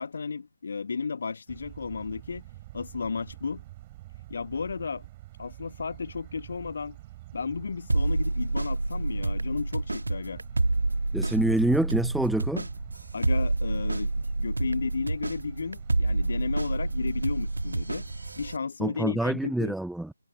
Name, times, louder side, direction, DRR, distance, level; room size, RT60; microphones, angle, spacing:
voice 1, 0.0-2.4 2.7-3.6 4.3-5.0 5.4-7.0 7.3-10.4 13.1-14.1 14.4-18.1 18.4-19.7, left 5 dB, 45° left, 1.6 m, -33 dB
sound 1, 1.5-18.6, right 17 dB, 20° right, 4.3 m, -47 dB
sound 2, 7.9-18.6, right 2 dB, 65° right, 1.6 m, -28 dB
voice 2, 11.1-12.7 18.8-20.1, right 1 dB, ahead, 0.4 m, -26 dB
figure-of-eight pair, 150°, 0 cm